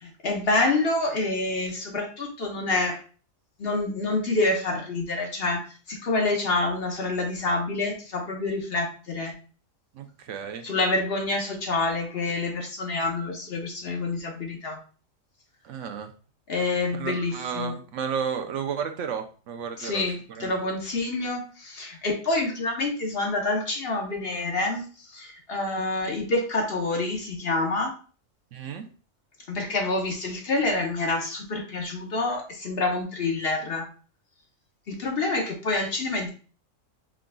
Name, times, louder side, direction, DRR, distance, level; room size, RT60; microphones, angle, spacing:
voice 1, 0.0-3.0 3.6-5.6 5.9-9.3 10.6-14.8 16.5-17.7 19.8-24.8 25.1-27.9 29.5-33.9 34.9-36.3, left 2 dB, 50° left, 1 dB, 1.0 m, -27 dB
voice 2, 9.9-10.6 15.6-16.1 17.0-20.0 20.3-20.6 28.5-28.9, right 7 dB, 70° right, 7 dB, 0.9 m, -32 dB
4.8 x 3.8 x 2.2 m, 0.38 s
omnidirectional pair, 1.3 m